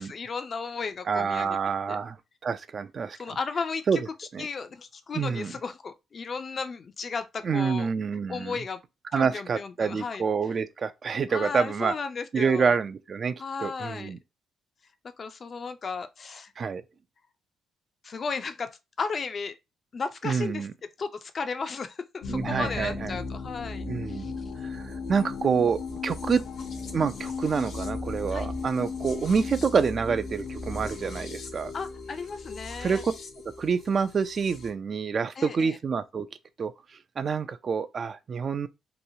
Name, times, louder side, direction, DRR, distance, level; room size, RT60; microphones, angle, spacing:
voice 1, 0.0-1.6 1.9-2.0 3.1-3.9 4.2-7.9 8.3-8.8 9.1-10.2 11.3-12.8 13.4-14.1 15.2-16.5 18.0-19.6 19.9-20.7 21.0-24.3 28.3-28.5 31.7-33.0 35.4-35.8, left 5 dB, 45° left, 0.4 m, -35 dB
voice 2, 1.1-2.2 2.4-3.2 3.9-4.0 4.3-4.5 5.1-5.5 7.4-8.6 9.1-11.9 12.3-13.3 13.6-14.2 16.6-16.8 20.2-20.7 22.3-23.2 23.9-24.4 24.6-26.4 26.9-31.7 32.8-33.1 33.6-36.3 36.6-36.7 37.2-38.7, right 5 dB, 45° right, 0.3 m, -27 dB
sound 1, 22.2-34.7, left 4 dB, 70° left, 0.7 m, -36 dB
2.9 x 2.3 x 2.6 m
cardioid pair, 90°, 0 cm